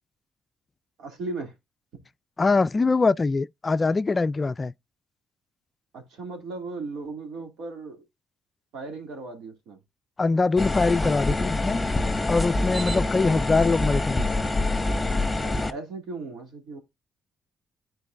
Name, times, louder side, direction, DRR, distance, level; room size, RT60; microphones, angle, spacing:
voice 1, 1.0-1.5 1.9-2.1 5.9-8.0 8.7-9.8 13.2-13.4 15.3-16.8, right 3 dB, 80° right, 2.3 m, -37 dB
voice 2, 2.4-4.7 10.2-11.8 12.3-14.2, left 3 dB, 30° left, 0.3 m, -23 dB
sound 1, 10.6-15.7, left 2 dB, 10° left, 1.2 m, -25 dB
10.5 x 4.5 x 2.5 m
cardioid pair, 90°, 0 cm